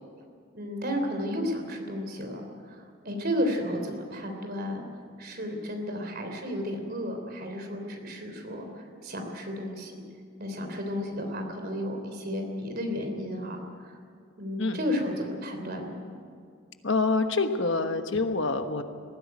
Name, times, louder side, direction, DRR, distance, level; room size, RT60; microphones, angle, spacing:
voice 1, 0.5-4.9 5.2-9.9 10.4-13.6 13.9-14.0 14.4-16.0, equal, 45° right, 4 dB, 3.4 m, -33 dB
voice 2, 16.8-18.8, left 3 dB, 60° left, 7 dB, 1.2 m, -26 dB
19.5 x 15.5 x 9.5 m, 2.2 s
head